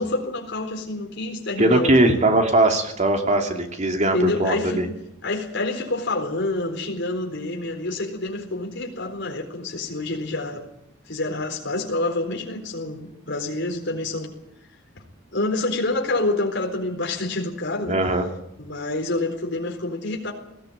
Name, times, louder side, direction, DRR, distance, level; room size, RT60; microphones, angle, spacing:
voice 1, 0.0-2.3 4.1-4.9 5.2-10.6 11.1-14.3 15.0-15.1 15.3-18.0 18.6-20.3, left 2 dB, 65° left, 1 dB, 4.2 m, -27 dB
voice 2, 1.6-4.9 17.9-18.2, right 1 dB, 35° right, 4 dB, 2.9 m, -20 dB
20.0 x 16.0 x 8.8 m, 0.82 s
head